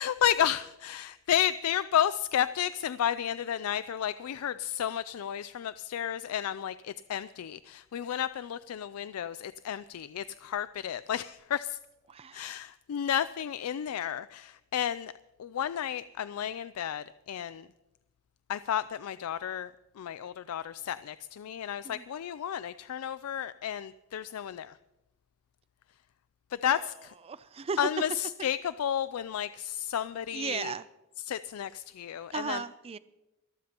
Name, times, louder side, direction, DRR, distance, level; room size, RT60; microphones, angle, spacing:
voice 1, 0.0-11.8 12.3-15.1 15.4-17.7 18.5-19.7 20.0-24.7 26.6-27.1 27.8-30.7 31.3-32.6, left 10 dB, 85° left, 0.4 m, -32 dB
voice 2, 12.1-12.6 21.8-22.1 26.7-26.9 27.2-27.8 30.3-30.9 32.3-33.0, right 5 dB, 30° right, 0.4 m, -36 dB
24.5 x 13.0 x 2.9 m
head